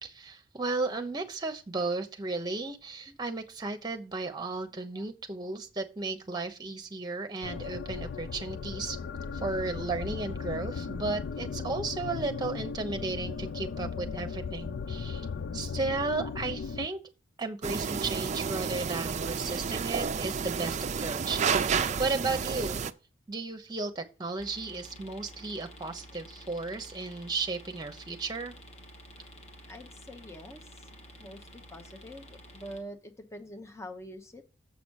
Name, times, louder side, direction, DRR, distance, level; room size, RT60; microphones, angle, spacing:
voice 1, 0.0-9.0 9.3-15.3 15.5-17.0 17.4-22.8 23.3-28.5, right 3 dB, 20° right, 6 dB, 0.9 m, -34 dB
sound 1, 7.4-16.9, left 5 dB, 60° left, 0.4 m, -37 dB
sound 2, 17.6-22.9, right 6 dB, 40° right, 0.4 m, -30 dB
sound 3, 24.4-32.8, equal, 35° left, 1.3 m, -50 dB
voice 2, 29.7-34.4, equal, 15° left, 7 dB, 0.8 m, -46 dB
7.3 x 5.0 x 6.3 m, 0.33 s
head